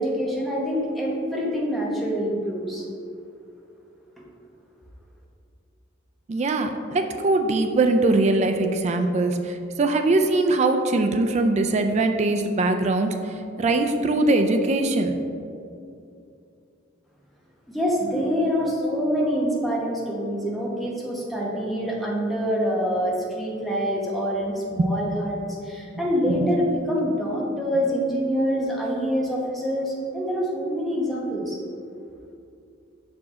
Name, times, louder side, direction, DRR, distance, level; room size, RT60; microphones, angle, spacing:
voice 1, 0.0-2.9 4.2-4.3 17.7-25.4 25.6-31.6, equal, ahead, -4 dB, 0.9 m, -25 dB
voice 2, 6.3-15.2 24.8-24.9 26.3-26.5, right 2 dB, 35° right, 6 dB, 0.3 m, -22 dB
6.0 x 4.9 x 3.7 m, 2.5 s
head